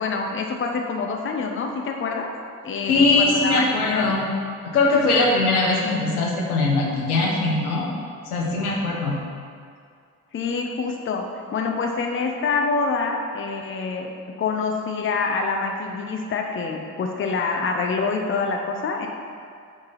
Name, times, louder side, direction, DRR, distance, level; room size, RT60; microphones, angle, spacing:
voice 1, 0.0-2.3 2.6-4.2 10.3-19.1, left 4 dB, 25° left, 2 dB, 0.8 m, -26 dB
voice 2, 2.9-4.3 4.7-7.9 8.3-9.2, left 3 dB, 75° left, -3 dB, 1.2 m, -21 dB
8.7 x 4.0 x 5.5 m, 2.2 s
figure-of-eight pair, 45°, 44 cm